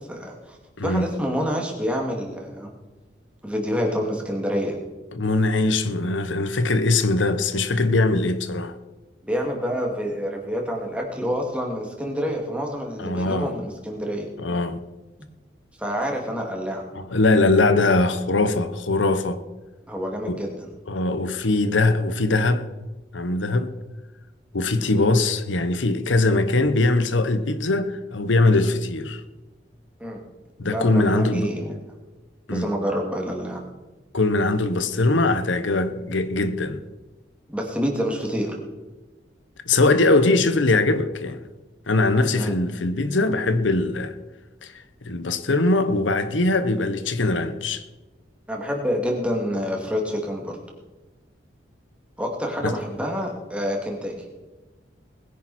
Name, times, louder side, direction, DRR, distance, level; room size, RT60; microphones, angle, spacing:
voice 1, 0.1-0.6 0.8-2.7 3.4-4.8 9.2-14.3 15.8-16.8 19.9-20.7 24.8-24.9 30.0-30.2 30.7-31.8 32.5-33.6 37.5-38.6 42.3-42.6 48.5-50.6 52.2-54.1, equal, 5° right, 2.5 m, -27 dB
voice 2, 0.8-1.1 5.1-8.8 13.0-13.6 14.4-14.8 16.9-19.4 20.3-20.4 20.9-22.7 23.1-23.7 24.5-29.2 30.6-31.5 32.5-32.7 34.1-36.8 39.7-41.4 41.9-44.2 44.6-44.7 45.0-47.8 52.6-52.8, left 2 dB, 85° left, 1.0 m, -21 dB
20.5 x 10.5 x 4.3 m
head